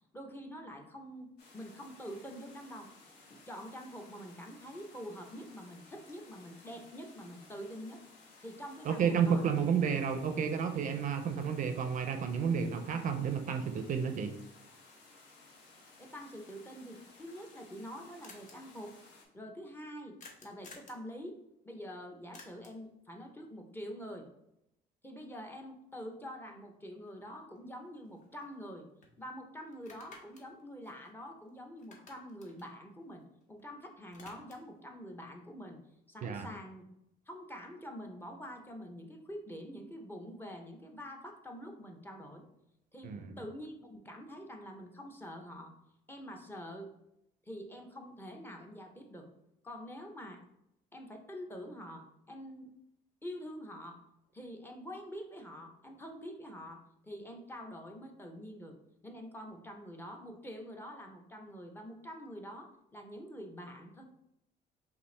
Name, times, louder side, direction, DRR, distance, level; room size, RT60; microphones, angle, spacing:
voice 1, 0.1-2.9 3.3-8.0 8.4-9.5 16.0-18.9 19.3-24.3 25.0-28.9 29.2-33.2 33.5-35.8 36.1-36.8 37.3-42.4 42.9-45.7 46.1-46.9 47.5-49.3 49.6-50.4 50.9-52.7 53.2-54.0 54.3-58.8 59.0-64.0, equal, 10° left, 3 dB, 0.7 m, -46 dB
sound 1, 1.4-19.2, left 3 dB, 90° left, 1.1 m, -58 dB
voice 2, 8.9-14.4 36.2-36.5 43.0-43.4, right 7 dB, 50° right, 7 dB, 0.5 m, -31 dB
sound 2, 18.2-18.5 20.2-21.0 22.3-22.9 27.1-27.2 27.6-28.7 29.0-29.1 29.7-31.5 31.8-33.6 33.9-34.8, left 3 dB, 50° left, 1.0 m, -55 dB
5.3 x 2.5 x 3.2 m, 0.81 s
cardioid pair, 110°, 17 cm